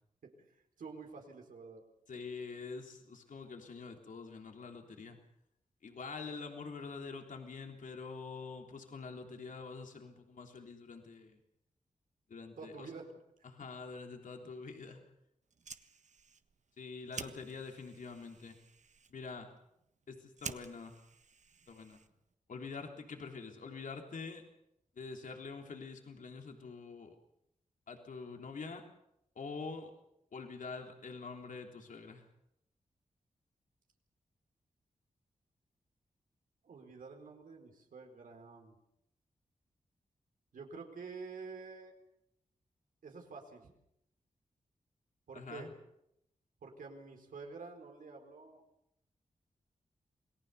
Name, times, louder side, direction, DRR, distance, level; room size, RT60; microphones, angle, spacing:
voice 1, 0.8-1.8 12.6-13.0 17.2-17.4 36.6-38.7 40.5-41.9 43.0-43.7 45.3-45.7 46.6-48.6, right 4 dB, 85° right, 3 dB, 4.5 m, -48 dB
voice 2, 2.1-5.2 5.8-11.4 12.3-12.9 13.4-15.0 16.8-18.6 19.1-19.5 20.1-21.0 21.7-22.0 22.5-24.4 25.0-27.2 27.9-28.8 29.4-29.9 30.3-32.3 45.3-45.7, left 4 dB, 75° left, 3 dB, 3.4 m, -46 dB
Fire, 15.4-22.3, right 5 dB, 60° right, 1.4 m, -51 dB
28.0 x 18.5 x 6.9 m, 0.79 s
cardioid pair, 65°, 14 cm